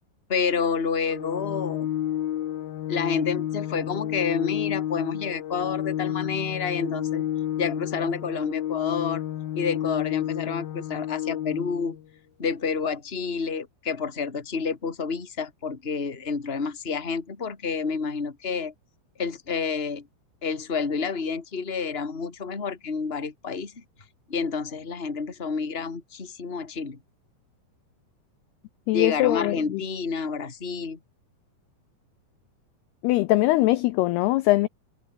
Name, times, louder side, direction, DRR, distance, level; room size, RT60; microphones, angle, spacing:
voice 1, 0.3-1.9 2.9-7.2 7.6-9.2 9.5-12.0 12.4-18.7 19.2-20.1 20.4-23.8 24.3-27.0 28.9-31.0, left 5 dB, 15° left, 2.3 m, -29 dB
Organ, 1.1-12.0, left 12 dB, 65° left, 3.1 m, -30 dB
voice 2, 28.9-29.8 33.0-34.7, left 18 dB, 80° left, 2.4 m, -22 dB
omnidirectional pair, 5.2 m